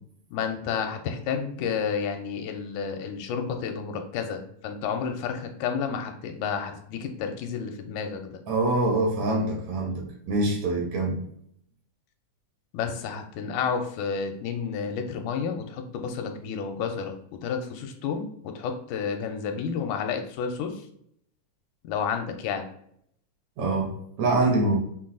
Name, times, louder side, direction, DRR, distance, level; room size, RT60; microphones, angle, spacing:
voice 1, 0.3-8.3 12.7-17.2 17.4-20.8 21.8-22.7, left 6 dB, 85° left, 5 dB, 2.0 m, -31 dB
voice 2, 8.5-11.2 23.6-23.9 24.2-24.8, right 2 dB, 70° right, 1 dB, 2.1 m, -24 dB
5.9 x 2.3 x 3.7 m, 0.69 s
omnidirectional pair, 3.6 m